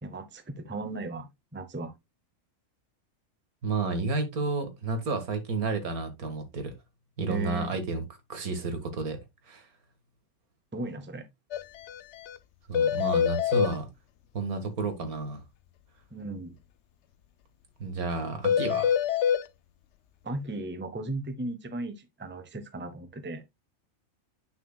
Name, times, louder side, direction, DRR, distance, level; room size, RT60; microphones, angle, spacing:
voice 1, 0.0-1.9 7.3-7.8 10.7-11.2 16.1-16.5 20.2-23.4, right 2 dB, 10° right, 0.7 m, -36 dB
voice 2, 3.6-6.7 7.2-8.0 8.3-9.2 9.5-9.6 12.7-13.9 14.3-15.4 17.8-19.0, right 3 dB, 85° right, 2.1 m, -31 dB
sound 1, 11.5-11.6 11.9-12.0 12.3-12.4 12.7-13.7 18.4-19.4, left 8 dB, 65° left, 0.7 m, -25 dB
9.3 x 6.0 x 2.2 m
omnidirectional pair, 1.5 m